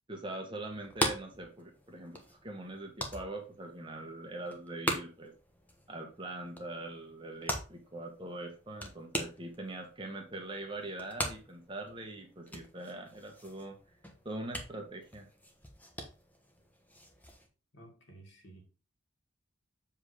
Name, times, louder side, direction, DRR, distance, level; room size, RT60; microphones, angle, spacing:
voice 1, 0.1-5.3 5.9-13.8 14.2-15.3, right 2 dB, 25° right, 2 dB, 1.2 m, -42 dB
sound 1, 0.7-17.5, equal, 10° left, 1.0 m, -42 dB
voice 2, 17.7-18.6, right 2 dB, 60° left, 1 dB, 2.3 m, -54 dB
7.5 x 3.5 x 4.9 m, 0.33 s
head